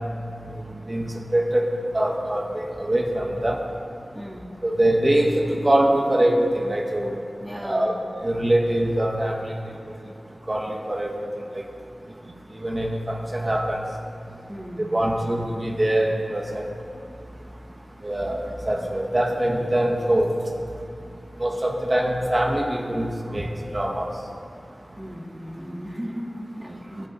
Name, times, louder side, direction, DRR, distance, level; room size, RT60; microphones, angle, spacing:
voice 1, 0.9-3.6 4.6-7.2 7.5-7.9 8.2-9.5 10.5-11.2 12.6-13.8 14.9-16.7 18.0-18.4 18.7-20.3 21.4-24.1, right 1 dB, 35° right, 0 dB, 1.7 m, -23 dB
voice 2, 4.1-4.5 7.4-8.0 14.5-15.2 25.0-27.0, equal, 10° right, 0 dB, 1.8 m, -36 dB
21.5 x 10.5 x 4.2 m, 2.6 s
wide cardioid pair, 50°, 0 cm